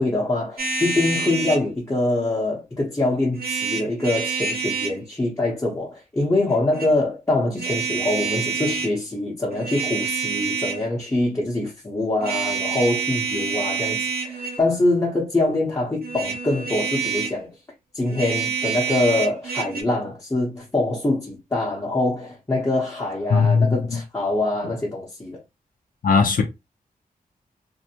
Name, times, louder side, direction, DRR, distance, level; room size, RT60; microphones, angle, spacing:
voice 1, 0.0-17.5 17.9-25.4, left 2 dB, 20° left, 0.9 m, -24 dB
sound 1, 0.6-1.6 3.3-5.0 6.5-6.9 7.6-8.9 9.5-10.9 12.2-14.7 16.0-17.4 18.1-19.8, right 6 dB, 85° right, 0.8 m, -27 dB
voice 2, 23.3-23.8 26.0-26.4, left 5 dB, 65° left, 0.6 m, -17 dB
2.6 x 2.2 x 2.8 m
wide cardioid pair, 100°, 15 cm